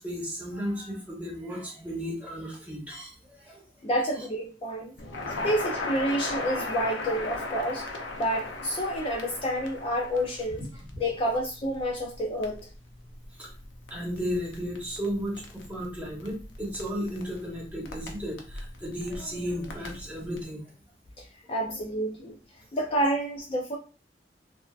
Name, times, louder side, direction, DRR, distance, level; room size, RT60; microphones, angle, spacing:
voice 1, 0.0-3.6 11.0-11.3 13.4-13.5 13.9-20.6 21.6-21.8, equal, 10° right, -4 dB, 1.0 m, -34 dB
voice 2, 3.8-4.9 5.4-7.8 8.2-10.6 11.0-12.6 21.2-22.4 22.7-23.8, equal, 30° left, 0 dB, 0.4 m, -29 dB
Crackle, 5.0-20.4, left 2 dB, 90° left, 0.6 m, -38 dB
3.4 x 2.2 x 2.3 m, 0.35 s
head